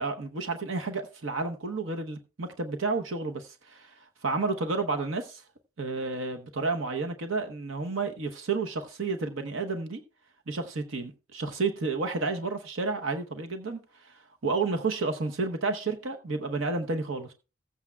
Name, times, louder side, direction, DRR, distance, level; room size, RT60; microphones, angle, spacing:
voice 1, 0.0-3.9 4.2-5.4 5.8-10.0 10.5-14.1 14.4-17.3, right 3 dB, 90° right, 0.9 m, -31 dB
16.0 x 8.4 x 2.3 m
head